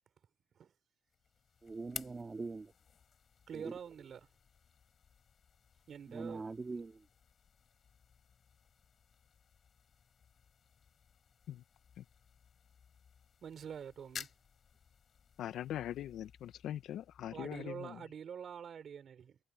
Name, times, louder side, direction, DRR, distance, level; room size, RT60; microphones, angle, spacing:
sound 1, 1.1-18.0, left 7 dB, 40° left, 6.8 m, -55 dB
voice 1, 1.6-2.7 3.5-3.7 6.1-7.1, right 3 dB, 20° right, 2.1 m, -42 dB
voice 2, 3.5-4.3 5.9-6.5 13.4-14.3 17.3-19.4, right 7 dB, 45° right, 4.3 m, -46 dB
voice 3, 15.4-18.0, left 11 dB, 65° left, 0.6 m, -42 dB
cardioid pair, 145°, 0 cm